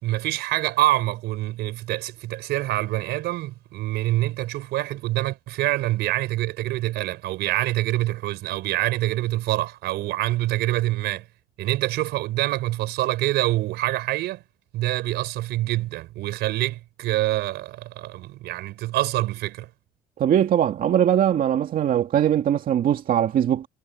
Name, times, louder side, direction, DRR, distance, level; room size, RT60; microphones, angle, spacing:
voice 1, 0.0-11.3 11.6-14.4 14.7-19.7, right 16 dB, 85° right, 4.6 m, -26 dB
voice 2, 20.2-23.7, right 10 dB, 55° right, 2.2 m, -21 dB
cardioid pair, 110°, 17 cm